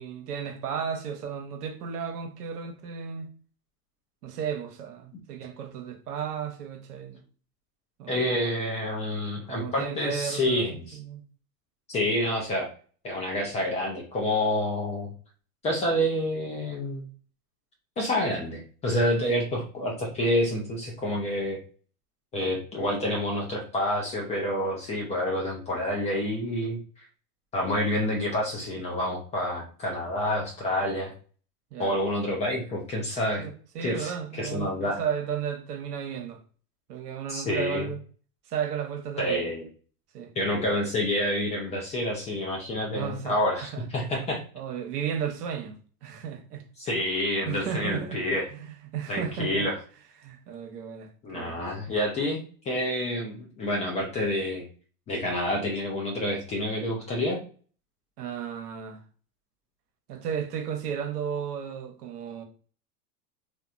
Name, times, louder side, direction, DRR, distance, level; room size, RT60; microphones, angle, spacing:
voice 1, 0.0-3.3 4.2-7.2 8.0-8.4 9.5-11.2 31.7-32.0 33.4-33.5 33.7-36.4 36.9-38.0 38.5-39.5 40.1-40.3 42.9-43.4 43.6-43.8 44.5-45.7 46.0-46.7 47.4-48.2 48.5-49.7 50.2-51.6 58.2-59.0 60.1-62.4, right 7 dB, 75° right, 0.9 m, -34 dB
voice 2, 8.1-11.0 11.9-12.7 13.0-15.1 15.6-17.1 18.0-21.6 22.3-26.8 27.5-31.1 31.8-33.5 33.8-35.0 37.3-37.9 39.2-39.6 40.4-44.4 46.8-48.4 49.1-49.8 51.2-54.7 55.1-57.4, left 1 dB, 15° left, 0.3 m, -28 dB
2.9 x 2.2 x 2.4 m
hypercardioid pair, 110°, 46 cm